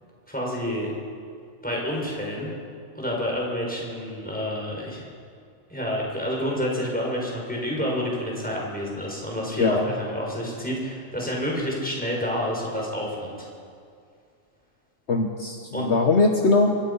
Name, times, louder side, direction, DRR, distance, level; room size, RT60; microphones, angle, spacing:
voice 1, 0.3-0.9 1.6-2.5 2.9-5.1 5.7-13.5 15.7-15.9, equal, 5° left, -3 dB, 5.9 m, -29 dB
voice 2, 15.1-16.8, left 3 dB, 55° left, 2 dB, 1.6 m, -21 dB
25.5 x 24.5 x 5.7 m, 2.3 s
omnidirectional pair, 1.4 m